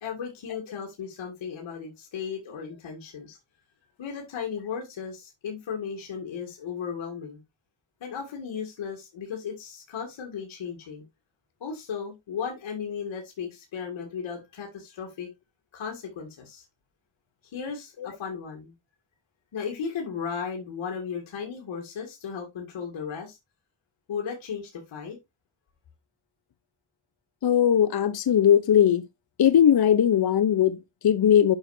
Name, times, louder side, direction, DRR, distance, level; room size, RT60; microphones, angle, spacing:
voice 1, 0.0-3.4 4.0-7.4 8.0-11.0 11.6-15.3 15.7-16.6 17.5-18.7 19.5-23.4 24.1-25.2, left 6 dB, 85° left, 2.2 m, -35 dB
voice 2, 27.4-29.0 29.4-31.6, left 9 dB, 55° left, 0.8 m, -20 dB
8.8 x 5.9 x 2.6 m
cardioid pair, 55°, 46 cm